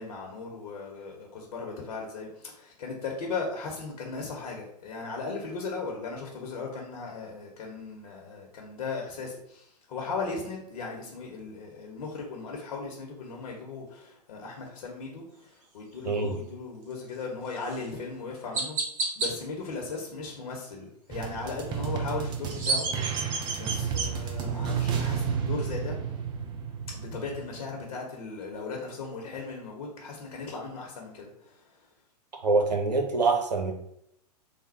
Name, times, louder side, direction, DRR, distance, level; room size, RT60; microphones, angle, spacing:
voice 1, 0.0-18.8 19.2-26.0 26.9-31.5, left 4 dB, 60° left, 0 dB, 1.0 m, -37 dB
voice 2, 16.0-16.4 32.4-33.7, right 3 dB, 80° right, 3 dB, 0.9 m, -25 dB
Chirp tweet, 17.6-17.8 18.5-19.3 22.3-24.1, right 3 dB, 50° right, 1.0 m, -29 dB
sound 1, 21.1-27.6, right 7 dB, 20° right, 0.4 m, -32 dB
3.4 x 2.2 x 4.0 m, 0.73 s
hypercardioid pair, 110°, 21 cm